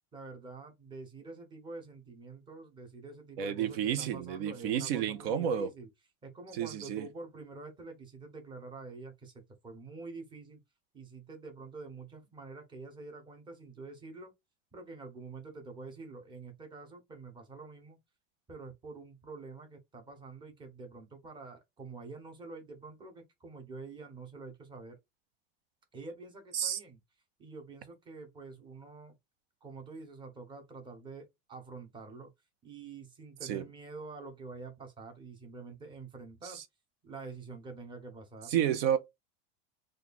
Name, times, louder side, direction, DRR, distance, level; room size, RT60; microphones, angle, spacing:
voice 1, 0.1-5.9 6.2-10.6 10.9-14.3 14.7-18.0 18.5-25.0 25.9-27.0 27.4-29.1 29.6-32.3 32.6-36.6 37.0-38.6, right 3 dB, 15° right, 0.9 m, -47 dB
voice 2, 3.4-5.7 6.6-7.1 26.5-26.8 33.4-33.6 36.5-36.6 38.5-39.0, right 9 dB, 80° right, 0.7 m, -31 dB
3.0 x 2.5 x 3.9 m
supercardioid pair, 155°, 29 cm